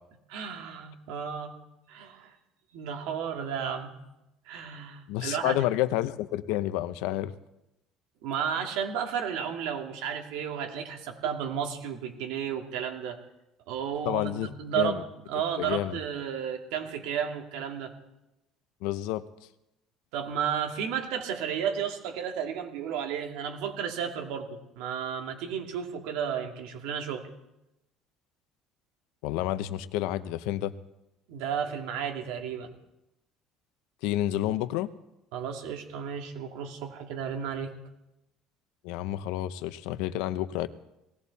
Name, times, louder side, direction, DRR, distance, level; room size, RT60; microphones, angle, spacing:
voice 1, 0.3-1.5 1.9-2.3 2.7-3.9 4.5-5.6 8.2-13.2 13.7-17.9 20.1-27.2 31.3-32.7 35.3-37.7, right 8 dB, 85° right, 3 dB, 2.5 m, -33 dB
voice 2, 5.1-7.3 14.0-14.5 14.8-15.0 15.6-16.0 18.8-19.2 29.2-30.7 34.0-34.9 38.8-40.7, left 14 dB, 85° left, 13 dB, 0.8 m, -29 dB
19.0 x 17.0 x 4.2 m, 0.90 s
cardioid pair, 165°, 0 cm